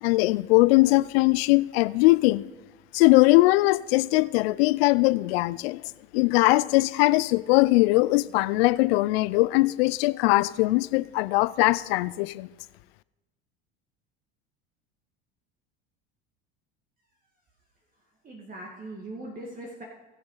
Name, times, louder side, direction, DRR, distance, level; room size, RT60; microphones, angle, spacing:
voice 1, 0.0-2.4 2.9-5.8 6.1-12.5, left 21 dB, 75° left, 0.5 m, -21 dB
voice 2, 17.9-19.8, right 1 dB, 30° right, 2.0 m, -41 dB
20.5 x 6.8 x 4.0 m
supercardioid pair, 95°, 30 cm